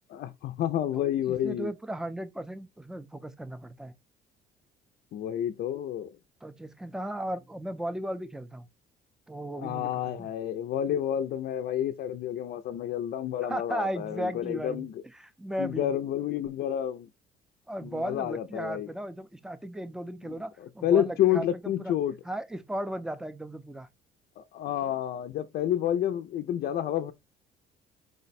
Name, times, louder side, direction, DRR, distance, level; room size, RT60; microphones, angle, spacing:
voice 1, 0.1-1.7 5.1-6.1 9.5-15.0 15.6-17.1 17.8-18.9 20.3-20.4 20.8-22.1 24.4-27.1, left 10 dB, 60° left, 0.4 m, -29 dB
voice 2, 0.9-3.9 6.4-8.7 9.3-10.3 13.5-15.9 17.7-21.9 22.2-23.9, right 1 dB, 5° right, 0.5 m, -36 dB
4.9 x 2.1 x 4.0 m
cardioid pair, 110°, 17 cm